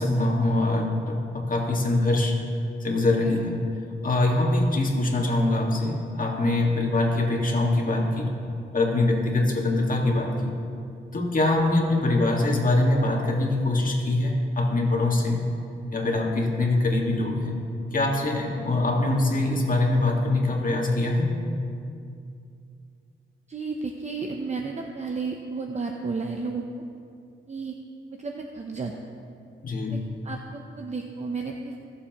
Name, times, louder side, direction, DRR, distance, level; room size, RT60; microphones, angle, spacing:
voice 1, 0.0-2.4 2.8-3.7 4.0-8.4 8.7-10.6 11.1-15.5 15.9-17.6 17.9-21.4 29.6-30.0, left 2 dB, 45° left, -1 dB, 1.7 m, -23 dB
voice 2, 23.5-26.6 27.5-27.8 28.1-28.9 29.9-30.0 30.2-31.8, right 4 dB, 35° right, 2 dB, 0.6 m, -32 dB
17.0 x 7.2 x 3.0 m, 2.5 s
cardioid pair, 95°, 20 cm